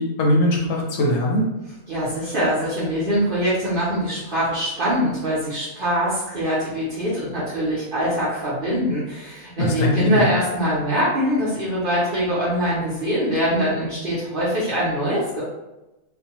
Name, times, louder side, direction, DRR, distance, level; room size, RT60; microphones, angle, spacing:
voice 1, 0.0-1.5 9.6-10.2, left 1 dB, 60° left, -2 dB, 0.8 m, -20 dB
voice 2, 1.9-15.4, equal, 50° right, -8 dB, 0.7 m, -23 dB
2.5 x 2.2 x 2.8 m, 0.99 s
omnidirectional pair, 1.5 m